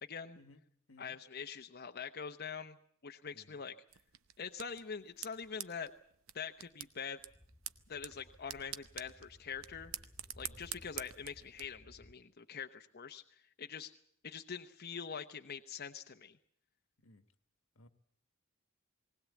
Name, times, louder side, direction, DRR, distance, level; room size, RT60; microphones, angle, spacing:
voice 1, 0.0-0.4 1.0-2.8 3.0-3.7 4.4-5.9 6.3-7.2 7.9-9.9 10.4-13.9 14.2-16.4, left 6 dB, 50° left, 6 dB, 0.9 m, -44 dB
sound 1, 3.9-11.6, right 12 dB, 80° right, 0.9 m, -48 dB
Speech / Wind, 7.2-12.1, left 1 dB, 15° left, 1.8 m, -60 dB
voice 2, 10.4-10.7 17.0-17.2 17.7-17.9, left 2 dB, 85° left, 10 dB, 1.5 m, -61 dB
20.0 x 19.0 x 8.3 m, 0.65 s
head